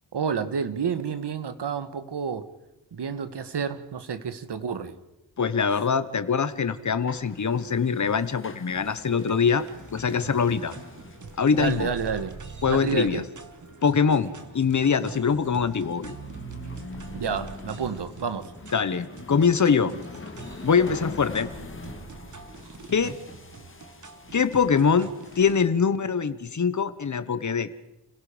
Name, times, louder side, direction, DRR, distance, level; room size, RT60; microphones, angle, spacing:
voice 1, 0.1-2.5 2.9-4.9 11.5-12.3 12.7-13.2 17.1-18.5 22.9-23.1, right 6 dB, 75° right, 11 dB, 1.6 m, -30 dB
voice 2, 5.4-9.7 9.9-10.7 11.4-11.9 12.6-13.2 13.8-16.1 18.7-19.9 20.6-21.5 22.9-23.2 24.3-27.7, left 6 dB, 45° left, 13 dB, 1.1 m, -23 dB
sound 1, 6.3-25.7, left 3 dB, 30° left, 1.8 m, -45 dB
sound 2, 8.7-25.6, right 4 dB, 45° right, 1.6 m, -44 dB
30.0 x 17.0 x 5.1 m, 0.93 s
wide cardioid pair, 170°, 41 cm